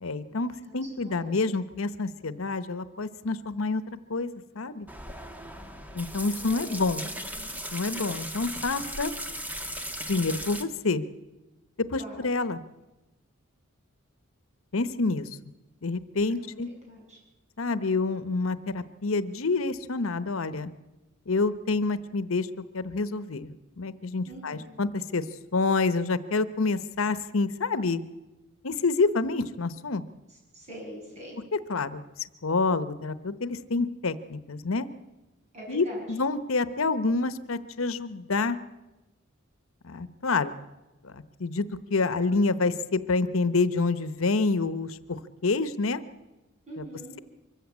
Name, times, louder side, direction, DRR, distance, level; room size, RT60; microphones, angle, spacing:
voice 1, 0.0-4.3 4.5-4.9 5.9-7.0 7.7-9.1 10.1-11.0 11.9-12.6 14.7-15.3 15.8-16.7 17.6-20.7 21.3-22.5 22.7-25.2 25.5-28.0 28.6-30.0 31.5-32.0 32.4-34.9 35.7-38.6 39.8-40.5 41.0-46.0 46.8-46.9, left 3 dB, 85° left, 14 dB, 0.9 m, -28 dB
voice 2, 0.7-1.5 6.4-7.5 12.0-12.3 16.2-16.6 16.9-17.2 24.2-24.7 30.5-31.4 35.5-36.0 46.7-47.1, equal, 35° right, -2 dB, 7.9 m, -44 dB
sound 1, 4.9-10.6, equal, 10° right, 1.5 m, -37 dB
24.0 x 14.5 x 8.5 m, 1.0 s
head